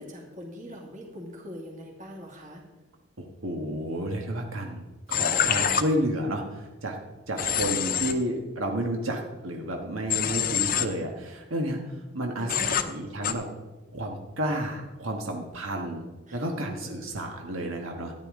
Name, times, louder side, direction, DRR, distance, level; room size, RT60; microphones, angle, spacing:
voice 1, 0.0-2.6 7.5-7.8 12.4-13.0 16.3-17.1, equal, 40° right, -1 dB, 2.4 m, -42 dB
voice 2, 3.2-7.0 7.3-13.4 13.9-18.1, right 1 dB, 85° right, 2 dB, 1.5 m, -31 dB
Human voice / Train, 5.1-5.8 7.4-8.1 10.1-10.8 12.5-12.8 13.2-13.3, left 8 dB, 45° left, 0.7 m, -25 dB
14.0 x 10.0 x 3.8 m, 1.2 s
head